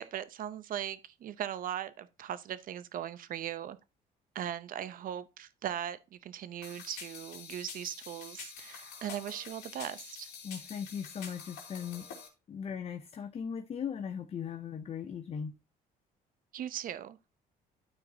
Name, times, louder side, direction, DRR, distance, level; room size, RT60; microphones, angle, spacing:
voice 1, 0.0-3.8 4.3-10.3 16.5-17.2, right 10 dB, 55° right, 0.7 m, -39 dB
sound 1, 6.6-12.3, left 6 dB, 80° left, 2.7 m, -47 dB
voice 2, 10.4-12.1 12.5-15.5, left 7 dB, 35° left, 0.6 m, -38 dB
12.0 x 4.7 x 2.8 m
cardioid pair, 110°, 17 cm